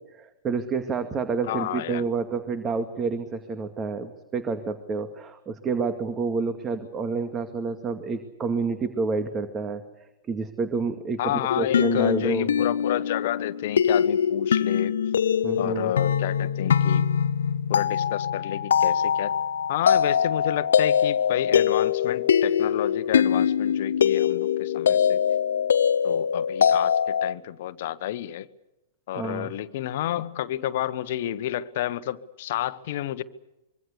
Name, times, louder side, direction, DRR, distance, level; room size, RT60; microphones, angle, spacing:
voice 1, 0.0-9.8 10.3-12.5 15.4-15.9 29.1-29.5, right 4 dB, 25° right, 8 dB, 2.3 m, -29 dB
voice 2, 1.5-2.0 11.2-14.9 15.6-17.0 17.7-19.3 19.7-25.2 26.0-28.5 29.1-33.2, left 12 dB, 55° left, 13 dB, 1.3 m, -30 dB
sound 1, 11.5-27.3, left 8 dB, 70° left, 0.8 m, -23 dB
25.0 x 24.0 x 6.9 m, 0.96 s
figure-of-eight pair, 105°, 0 cm